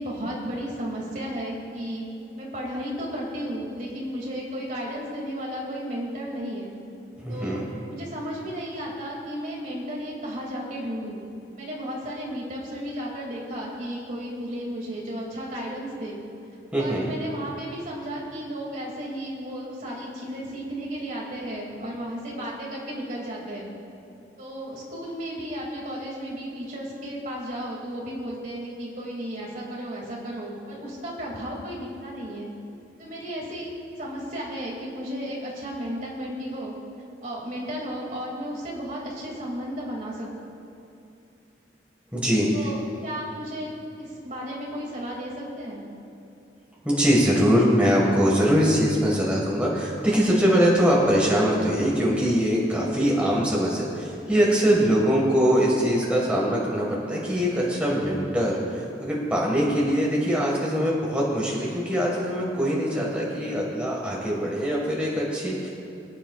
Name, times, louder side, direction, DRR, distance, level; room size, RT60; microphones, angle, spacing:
voice 1, 0.0-2.1 2.3-6.7 7.3-7.6 7.9-11.2 11.5-16.2 16.8-23.7 24.4-32.5 33.0-36.7 37.2-40.3 42.5-43.7 44.0-45.8, equal, 45° right, -3 dB, 2.5 m, -34 dB
voice 2, 7.2-7.7 16.7-17.1 42.1-42.7 46.8-65.7, equal, 5° right, -4 dB, 1.7 m, -22 dB
25.0 x 9.1 x 2.4 m, 2.7 s
head